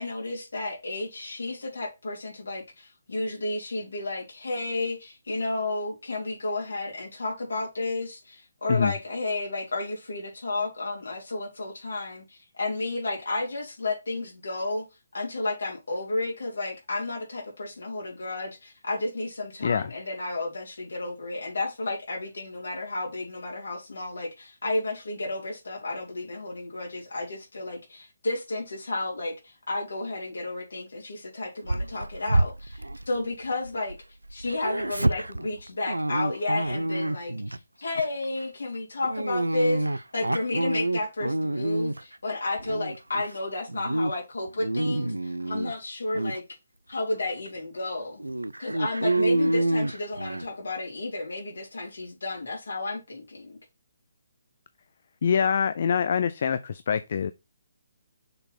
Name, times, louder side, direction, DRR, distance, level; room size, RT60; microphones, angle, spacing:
voice 1, 0.0-14.9 15.1-34.0 34.3-46.4 46.9-48.2 48.6-53.6, left 2 dB, 70° left, 3.2 m, -32 dB
Dog, 31.6-34.0 34.2-37.6 38.0-38.2 39.0-42.1 42.6-43.3 43.7-44.1 44.5-45.7 46.1-46.4 47.0-47.1 47.5-47.6 48.2-50.5, right 1 dB, 85° right, 0.4 m, -27 dB
voice 2, 55.2-57.3, left 7 dB, 50° left, 0.4 m, -24 dB
6.5 x 4.5 x 4.3 m
figure-of-eight pair, 140°, 0 cm